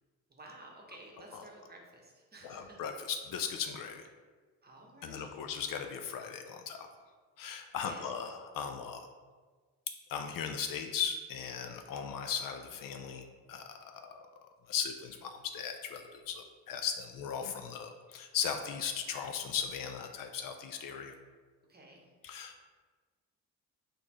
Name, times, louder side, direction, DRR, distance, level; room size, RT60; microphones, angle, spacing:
voice 1, 0.3-2.8 4.6-5.3 7.8-8.1 21.7-22.1, right 2 dB, 25° right, 0 dB, 1.0 m, -53 dB
voice 2, 2.4-4.1 5.0-6.9 7.4-9.1 10.1-14.3 14.7-21.1 22.2-22.6, left 7 dB, 55° left, 6 dB, 0.5 m, -38 dB
4.1 x 3.2 x 3.0 m, 1.5 s
supercardioid pair, 60°, 40 cm